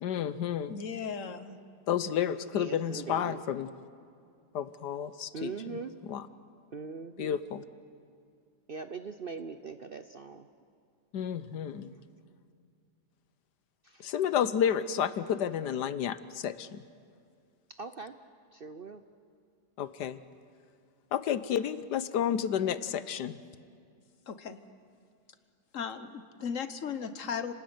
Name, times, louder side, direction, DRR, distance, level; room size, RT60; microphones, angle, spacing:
voice 1, 0.0-0.7 1.9-3.7 4.5-5.8 6.0-6.3 7.2-7.6 11.1-11.9 14.0-16.8 19.8-20.2 21.1-23.4, left 9 dB, 80° left, 14 dB, 1.5 m, -31 dB
voice 2, 0.7-1.6 24.3-24.6 25.7-27.5, left 6 dB, 55° left, 11 dB, 1.4 m, -36 dB
voice 3, 2.5-3.4 5.3-5.9 6.7-7.4 8.7-10.5 13.8-14.1 17.8-18.1 18.5-19.0, right 5 dB, 50° right, 9 dB, 0.7 m, -41 dB
30.0 x 19.5 x 9.6 m, 2.3 s
omnidirectional pair, 1.8 m